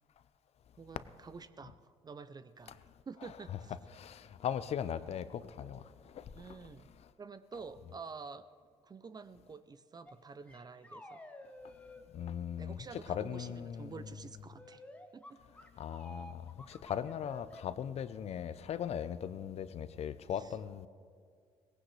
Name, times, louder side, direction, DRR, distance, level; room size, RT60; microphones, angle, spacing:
voice 1, 0.8-2.8 3.1-3.8 6.3-6.9 7.2-8.5 8.8-11.2 12.6-14.8 15.1-15.4 20.4-20.6, right 5 dB, 35° right, 0.6 m, -49 dB
voice 2, 3.9-6.5 12.1-12.8 13.1-13.9 15.8-20.9, left 9 dB, 60° left, 0.7 m, -39 dB
sound 1, 10.1-10.2 10.5-12.0 14.6-17.6, left 1 dB, 10° left, 1.4 m, -51 dB
18.0 x 16.0 x 3.3 m
supercardioid pair, 65°, 12 cm